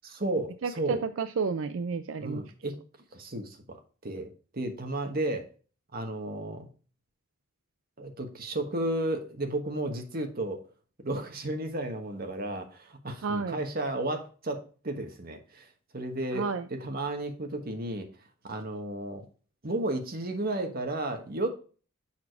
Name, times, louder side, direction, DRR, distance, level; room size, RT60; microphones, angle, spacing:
voice 1, 0.0-1.0 2.2-2.7 3.1-3.8 4.0-5.4 5.9-6.7 8.0-10.6 11.0-15.7 15.9-18.1 18.4-19.2 19.6-21.5, right 1 dB, 45° right, 5 dB, 1.3 m, -33 dB
voice 2, 0.6-2.4 13.2-13.6 16.3-16.7, right 5 dB, 75° right, 11 dB, 0.5 m, -31 dB
7.2 x 4.8 x 4.6 m, 0.38 s
head